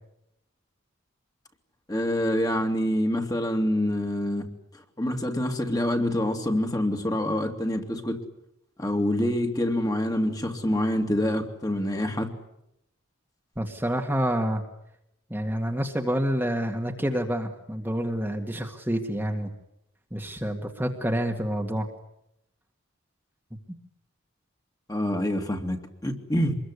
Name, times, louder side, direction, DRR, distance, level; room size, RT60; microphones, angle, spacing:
voice 1, 1.9-4.5 5.0-8.2 8.8-12.3 24.9-26.5, left 1 dB, 20° left, 4 dB, 2.6 m, -26 dB
voice 2, 13.6-14.6 15.3-19.5 20.1-21.9, equal, 10° right, 2 dB, 1.9 m, -28 dB
25.5 x 21.5 x 9.8 m, 0.82 s
head